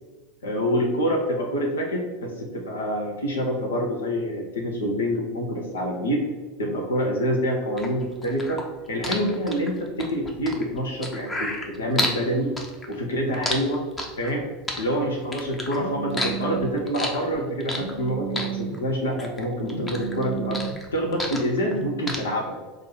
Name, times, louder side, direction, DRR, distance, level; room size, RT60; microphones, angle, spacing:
voice 1, 0.4-6.2 6.6-8.6 8.9-12.5 12.9-13.8 14.2-14.5 14.8-20.6 20.9-22.6, equal, 70° left, 1 dB, 0.8 m, -26 dB
sound 1, 7.8-12.2 12.6-14.4 14.7-15.8 16.1-18.0 18.3-19.4 19.7-21.8 22.1-22.2, left 2 dB, 15° left, 0.8 m, -30 dB
Telephone, 15.7-16.8 17.7-18.8 19.7-20.8 21.7-22.0, right 6 dB, 80° right, 0.5 m, -32 dB
4.6 x 2.6 x 4.3 m, 1.3 s
figure-of-eight pair, 80°, 0 cm